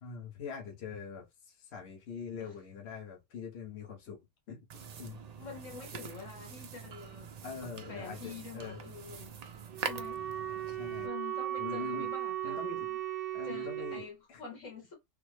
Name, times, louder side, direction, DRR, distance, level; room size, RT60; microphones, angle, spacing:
voice 1, 0.0-4.2 4.5-5.2 7.4-8.8 10.7-11.1 11.6-12.1 12.4-12.9 13.3-14.4, left 6 dB, 60° left, 1.1 m, -43 dB
sound 1, 4.7-11.1, right 7 dB, 90° right, 0.3 m, -44 dB
voice 2, 5.4-7.3 7.6-9.4 9.8-10.2 11.0-13.0 13.4-14.9, left 5 dB, 85° left, 1.7 m, -47 dB
Wind instrument woodwind instrument, 9.7-14.1, right 12 dB, 60° right, 0.7 m, -37 dB
3.4 x 2.0 x 3.1 m
omnidirectional pair, 1.3 m